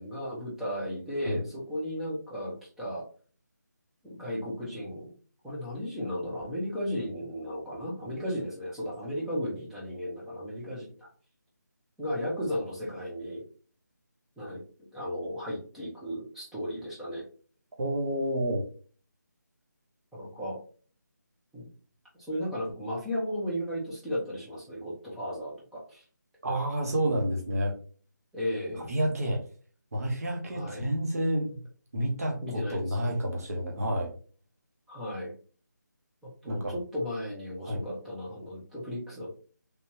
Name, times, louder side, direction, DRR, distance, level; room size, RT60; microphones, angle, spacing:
voice 1, 0.0-3.0 4.0-5.1 5.4-11.1 12.0-13.4 14.4-14.6 14.9-17.2 20.1-20.6 21.5-21.7 22.3-26.0 28.3-28.9 30.5-30.8 32.4-33.1 34.9-35.3 36.2-39.3, equal, ahead, -7 dB, 0.5 m, -35 dB
voice 2, 17.8-18.6 26.4-27.7 28.7-29.4 29.9-31.6 31.9-34.1 36.5-36.7 37.6-37.8, equal, 50° right, 0 dB, 1.1 m, -29 dB
3.5 x 2.8 x 2.8 m, 0.41 s
figure-of-eight pair, 165°, 10 cm